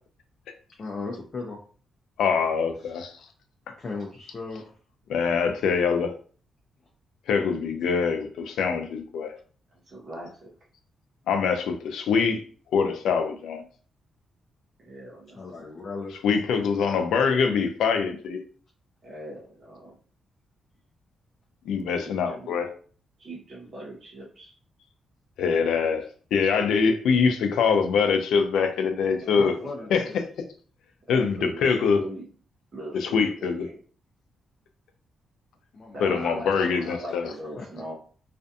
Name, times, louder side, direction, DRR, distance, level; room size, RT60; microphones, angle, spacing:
voice 1, 0.8-1.6 2.8-3.1 3.8-4.7 15.3-16.2 29.3-30.2 35.7-36.2 36.6-36.9 37.6-37.8, left 3 dB, 35° left, -2 dB, 0.5 m, -37 dB
voice 2, 2.2-3.1 3.7-3.8 5.1-6.1 7.3-9.3 11.3-12.4 12.7-13.6 16.1-18.4 21.7-22.7 25.4-26.1 26.3-29.6 29.9-30.2 31.1-32.0 32.9-33.7 36.0-37.3, left 5 dB, 90° left, 7 dB, 0.4 m, -24 dB
voice 3, 9.7-10.5 14.8-15.7 19.0-20.0 21.8-22.6 23.2-24.5 29.0-29.9 31.1-32.3 32.7-33.8 35.9-37.9, right 1 dB, 40° right, -4 dB, 0.7 m, -41 dB
2.5 x 2.2 x 2.6 m, 0.42 s
cardioid pair, 145°, 0 cm